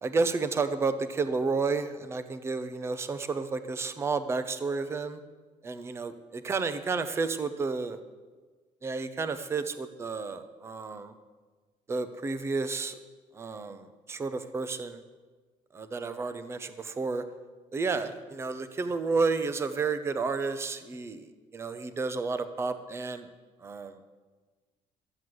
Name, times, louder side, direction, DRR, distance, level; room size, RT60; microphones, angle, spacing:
voice 1, 0.0-5.2 5.6-6.1 6.4-8.0 8.8-11.1 11.9-12.9 13.3-15.0 15.7-17.2 17.7-21.3 21.5-23.3 23.6-23.9, right 4 dB, 20° right, 11 dB, 0.7 m, -31 dB
13.5 x 7.8 x 7.7 m, 1.3 s
cardioid pair, 155°, 13 cm